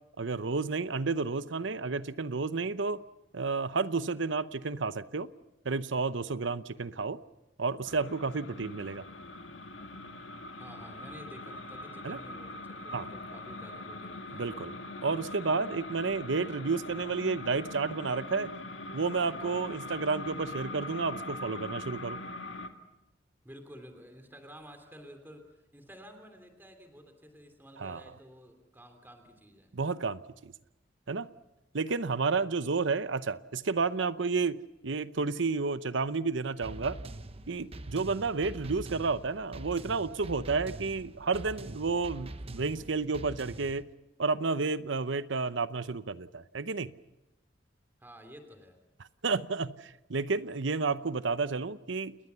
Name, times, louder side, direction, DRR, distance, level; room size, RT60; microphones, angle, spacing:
voice 1, 0.2-3.0 3.3-5.3 5.6-7.2 7.6-9.0 12.0-12.2 12.9-13.1 14.3-14.8 15.0-18.5 18.9-22.2 27.8-28.0 29.7-30.5 31.1-31.3 31.7-34.6 34.8-37.0 37.5-43.9 44.2-46.9 49.2-52.2, right 4 dB, 80° right, 0.8 m, -31 dB
sound 1, 7.8-22.7, left 2 dB, 85° left, 1.9 m, -42 dB
voice 2, 10.6-14.5 23.4-29.7 48.0-48.8 50.9-51.0, equal, 10° right, 3.0 m, -51 dB
sound 2, 36.6-43.8, right 1 dB, 30° right, 0.9 m, -44 dB
29.0 x 20.5 x 6.9 m
head